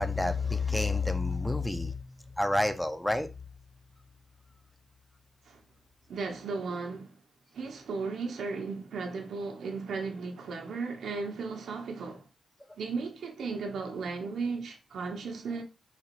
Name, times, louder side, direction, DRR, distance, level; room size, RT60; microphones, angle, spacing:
voice 1, 0.0-3.3, left 2 dB, 5° left, 0.4 m, -29 dB
voice 2, 6.1-7.2 7.5-12.2 12.8-15.6, right 4 dB, 75° right, 0.9 m, -35 dB
4.1 x 3.0 x 3.0 m
cardioid pair, 100°, 0 cm